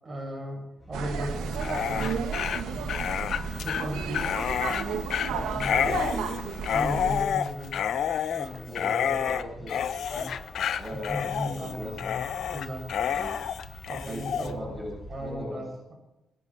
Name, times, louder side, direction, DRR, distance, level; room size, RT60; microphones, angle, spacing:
voice 1, 0.0-2.2 2.7-3.2 3.6-4.4 5.3-5.9 6.6-7.8 8.4-8.7 9.6-9.7 10.1-10.4 10.9-12.2 12.5-12.9 13.9-14.7 15.1-15.9, equal, 30° right, 1 dB, 7.7 m, -37 dB
sound 1, 0.8-15.3, right 1 dB, 5° left, 6.6 m, -46 dB
sound 2, 0.9-7.2, right 5 dB, 85° right, 2.2 m, -32 dB
Dog, 1.5-14.5, left 8 dB, 65° left, 1.0 m, -29 dB
voice 2, 5.8-6.4 8.7-10.1 10.7-12.2 13.1-13.5 14.0-15.7, equal, 15° right, -2 dB, 7.6 m, -39 dB
24.0 x 10.0 x 4.7 m, 0.97 s
cardioid pair, 90°, 0 cm